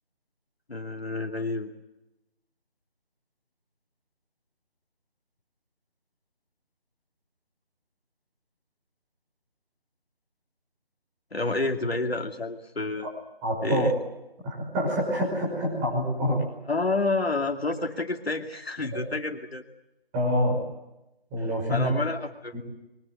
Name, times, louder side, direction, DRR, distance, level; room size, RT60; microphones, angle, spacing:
voice 1, 0.7-1.7 11.3-13.1 13.6-13.9 16.7-19.6 21.7-22.5, left 3 dB, 90° left, 3 dB, 2.6 m, -29 dB
voice 2, 13.4-13.9 14.4-16.4 18.9-19.0 20.1-20.6 21.3-22.0 22.5-22.6, equal, 10° right, -2 dB, 5.3 m, -26 dB
23.0 x 19.5 x 9.5 m, 0.91 s
figure-of-eight pair, 170°, 30 cm